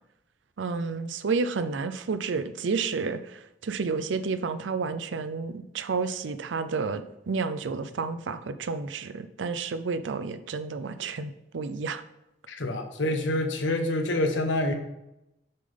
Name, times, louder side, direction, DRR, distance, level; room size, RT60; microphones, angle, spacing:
voice 1, 0.6-12.0, right 4 dB, 85° right, 11 dB, 0.5 m, -31 dB
voice 2, 12.5-14.7, left 1 dB, 90° left, 6 dB, 0.9 m, -27 dB
6.6 x 3.8 x 5.2 m, 0.87 s
head